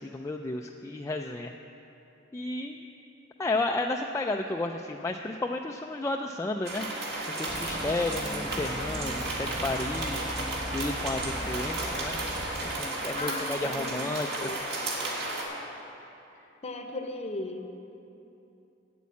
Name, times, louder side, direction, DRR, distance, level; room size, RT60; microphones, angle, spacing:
voice 1, 0.0-1.5 2.3-2.8 3.4-6.9 7.4-10.3 10.7-12.2 12.8-14.5, left 2 dB, 15° left, 2 dB, 0.3 m, -32 dB
sound 1, 6.6-15.4, right 2 dB, 60° right, 1.9 m, -33 dB
sound 2, 7.5-12.8, equal, 25° right, 0.7 m, -38 dB
voice 2, 13.1-14.0 14.4-14.6 16.6-17.7, left 2 dB, 35° left, 5 dB, 0.7 m, -36 dB
8.4 x 8.4 x 8.3 m, 3.0 s
head